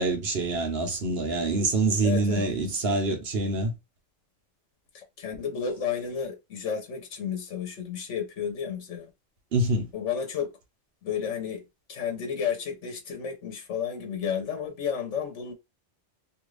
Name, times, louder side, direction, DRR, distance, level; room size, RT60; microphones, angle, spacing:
voice 1, 0.0-3.7 9.5-9.8, right 2 dB, 60° right, 1.1 m, -25 dB
voice 2, 2.0-2.5 4.9-9.1 9.9-10.5 11.0-11.6 11.9-15.5, left 7 dB, 90° left, 1.2 m, -32 dB
2.9 x 2.5 x 3.1 m
omnidirectional pair, 1.2 m